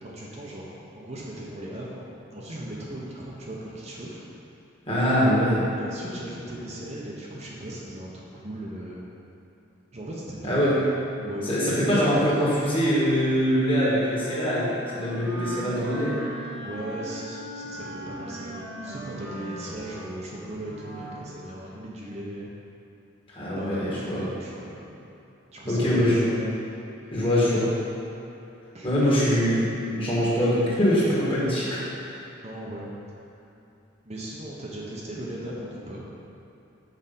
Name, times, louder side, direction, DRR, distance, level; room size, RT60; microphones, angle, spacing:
voice 1, 0.0-2.1 2.3-4.2 5.7-9.1 9.9-10.7 11.2-11.5 16.6-22.6 23.6-25.0 25.5-26.1 28.7-29.5 32.3-32.9 34.0-36.0, right 1 dB, 35° right, -4 dB, 0.9 m, -37 dB
voice 2, 4.9-5.6 10.4-10.7 11.5-14.7 14.9-16.2 23.3-24.2 25.7-26.4 27.1-27.7 28.8-32.2, equal, 25° left, -7 dB, 1.8 m, -23 dB
Wind instrument woodwind instrument, 14.1-21.4, right 1 dB, 75° right, 1.7 m, -39 dB
6.6 x 4.8 x 5.5 m, 2.8 s
head